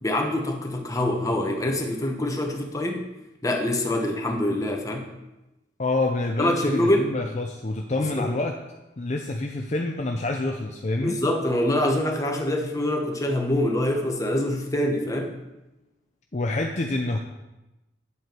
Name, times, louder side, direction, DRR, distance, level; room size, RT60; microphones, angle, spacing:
voice 1, 0.0-3.0 3.4-5.1 6.4-7.1 8.2-8.3 11.0-15.4, left 1 dB, 20° left, 2 dB, 1.2 m, -25 dB
voice 2, 5.8-8.6 9.0-11.2 16.3-17.2, left 2 dB, 40° left, 2 dB, 0.7 m, -27 dB
9.8 x 7.9 x 4.6 m, 0.99 s
head